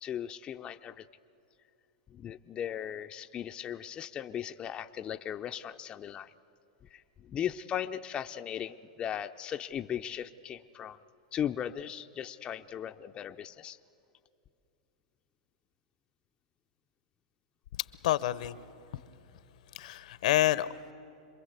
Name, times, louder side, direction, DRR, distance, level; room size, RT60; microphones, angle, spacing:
voice 1, 0.0-1.0 2.1-6.3 6.9-11.0 11.3-13.8, left 9 dB, 25° left, 7 dB, 0.5 m, -37 dB
voice 2, 17.8-18.6 18.9-19.0 19.7-20.9, left 14 dB, 70° left, 16 dB, 0.8 m, -29 dB
27.0 x 22.0 x 8.1 m, 2.7 s
hypercardioid pair, 135°, 4 cm